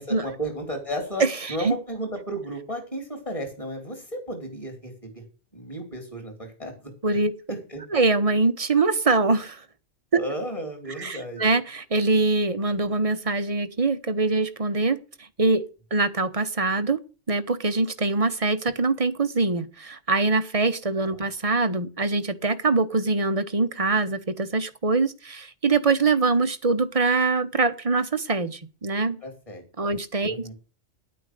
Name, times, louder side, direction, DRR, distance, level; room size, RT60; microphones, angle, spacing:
voice 1, 0.0-1.2 1.5-5.1 5.5-7.2 7.5-7.8 10.1-11.4 21.1-21.3 29.2-29.6 30.2-30.5, equal, 25° left, 5.0 m, -33 dB
voice 2, 1.2-1.7 7.0-7.3 7.9-9.6 10.1-10.2 11.0-15.0 15.4-15.6 15.9-17.0 17.3-29.2 29.8-30.5, right 3 dB, 30° right, 1.0 m, -23 dB
10.5 x 9.1 x 6.6 m
omnidirectional pair, 1.3 m